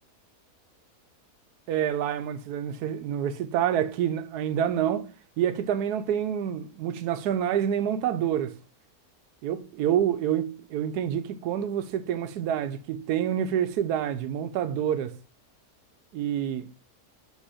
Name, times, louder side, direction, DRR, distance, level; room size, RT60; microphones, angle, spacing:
voice 1, 1.7-5.1 5.4-8.5 9.4-15.2 16.1-16.7, right 9 dB, 90° right, 1.1 m, -27 dB
8.2 x 3.0 x 4.9 m
omnidirectional pair, 1.6 m